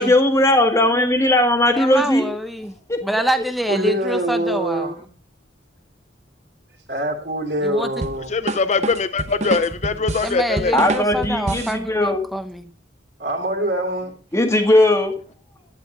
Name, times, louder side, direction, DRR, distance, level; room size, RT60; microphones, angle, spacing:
voice 1, 0.0-2.3 2.9-3.0 10.7-12.3 14.3-15.1, left 1 dB, 15° left, 1.8 m, -17 dB
voice 2, 1.8-2.7 3.0-4.9 7.6-7.9 10.2-12.7, equal, ahead, 0.8 m, -26 dB
voice 3, 3.7-5.0 6.9-8.3 13.2-14.1, right 1 dB, 55° right, 2.9 m, -24 dB
sound 1, 8.0-11.8, right 2 dB, 35° right, 0.9 m, -27 dB
voice 4, 8.3-10.7, left 4 dB, 35° left, 0.4 m, -22 dB
11.5 x 10.0 x 4.0 m
head